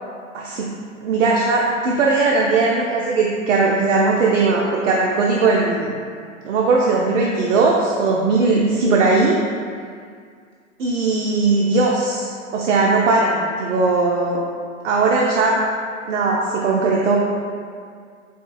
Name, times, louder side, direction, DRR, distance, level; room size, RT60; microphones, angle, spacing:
voice 1, 0.3-0.7 1.0-5.9 6.4-9.4 10.8-14.4 14.8-15.6 16.1-17.2, right 3 dB, 70° right, -2 dB, 0.5 m, -18 dB
4.3 x 2.3 x 2.3 m, 2.1 s
hypercardioid pair, 130°, 40 cm